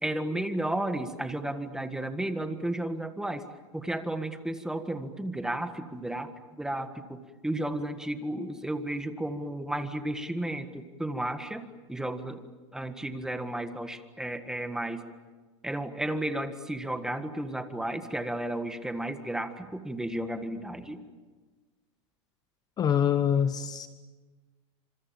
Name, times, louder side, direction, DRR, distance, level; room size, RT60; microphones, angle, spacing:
voice 1, 0.0-3.4 3.7-12.4 12.7-15.0 15.6-21.0, right 1 dB, 5° right, 9 dB, 1.7 m, -33 dB
voice 2, 22.8-23.9, left 8 dB, 25° left, 11 dB, 1.1 m, -25 dB
29.0 x 26.5 x 7.4 m, 1.3 s
supercardioid pair, 135°, 16 cm